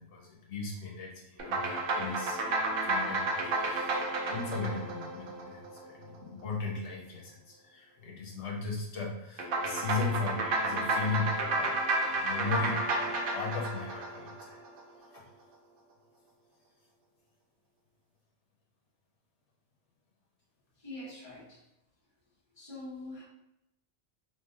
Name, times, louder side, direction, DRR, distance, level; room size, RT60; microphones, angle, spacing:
voice 1, 0.0-14.6 15.1-15.3, left 4 dB, 85° left, -2 dB, 1.0 m, -37 dB
sound 1, 1.4-6.0 9.4-14.8, right 2 dB, 60° right, 0.7 m, -31 dB
voice 2, 20.8-21.6 22.5-23.2, left 2 dB, 30° left, -4 dB, 0.8 m, -44 dB
2.5 x 2.0 x 3.7 m, 0.86 s
omnidirectional pair, 1.1 m